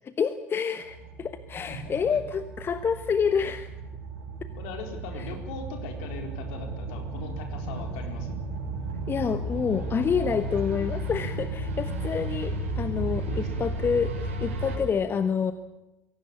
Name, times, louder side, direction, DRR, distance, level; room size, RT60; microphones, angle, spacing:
voice 1, 0.0-3.7 5.2-5.3 9.1-15.5, left 6 dB, 35° left, 12 dB, 1.2 m, -28 dB
sound 1, 0.8-14.8, right 2 dB, 75° right, 5.7 m, -34 dB
voice 2, 1.7-2.2 4.6-8.4 13.3-13.5, left 4 dB, 65° left, 5 dB, 4.2 m, -40 dB
22.5 x 17.5 x 8.4 m, 1.0 s
figure-of-eight pair, 60°, 7 cm